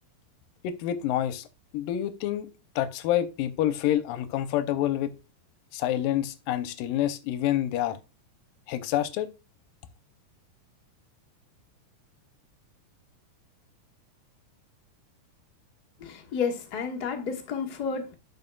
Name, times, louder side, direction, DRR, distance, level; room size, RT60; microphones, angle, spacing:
voice 1, 0.6-1.5 1.7-2.5 2.8-5.1 5.7-8.0 8.7-9.3, left 12 dB, 90° left, 2.3 m, -27 dB
voice 2, 16.0-18.1, left 5 dB, 40° left, 1.5 m, -31 dB
11.0 x 5.7 x 2.3 m
omnidirectional pair, 4.0 m